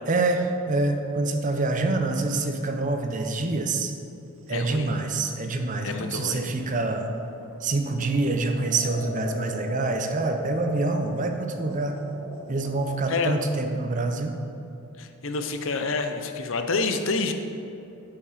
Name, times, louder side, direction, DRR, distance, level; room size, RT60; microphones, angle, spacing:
voice 1, 0.1-3.9 4.5-7.1 7.6-12.0 12.5-14.3, right 3 dB, 35° right, 5 dB, 0.6 m, -26 dB
voice 2, 4.5-4.9 5.8-6.4 13.1-13.4 15.0-17.3, left 4 dB, 60° left, 7 dB, 0.6 m, -28 dB
sound 1, 4.5-13.4, equal, 70° right, 1.0 m, -37 dB
8.5 x 5.7 x 4.9 m, 2.8 s
head